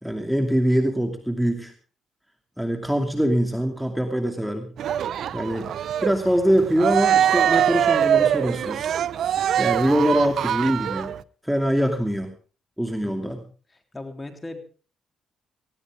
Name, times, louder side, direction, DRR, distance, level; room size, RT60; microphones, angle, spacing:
voice 1, 0.0-1.7 2.6-4.7 5.3-5.7 6.0-9.0 9.6-11.1 11.4-12.3 12.8-13.4, equal, 5° right, 5 dB, 2.6 m, -23 dB
Cheering, 4.8-11.2, right 10 dB, 65° right, 0.7 m, -23 dB
voice 2, 13.0-13.5 13.7-14.6, left 2 dB, 20° left, 6 dB, 3.5 m, -39 dB
19.0 x 16.0 x 3.7 m, 0.37 s
cardioid pair, 90°, 0 cm